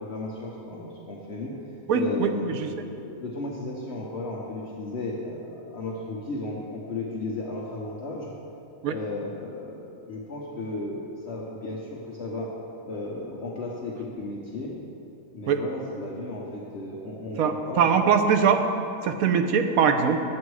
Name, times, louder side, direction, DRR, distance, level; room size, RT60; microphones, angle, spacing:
voice 1, 0.0-1.5 1.9-8.3 8.9-12.5 12.8-14.7 15.3-17.9, left 2 dB, 55° left, -4 dB, 1.2 m, -34 dB
voice 2, 1.9-2.7 8.8-8.9 15.5-15.6 17.4-18.6 19.0-20.2, right 6 dB, 85° right, 6 dB, 1.2 m, -22 dB
10.0 x 8.0 x 4.8 m, 2.6 s
omnidirectional pair, 1.4 m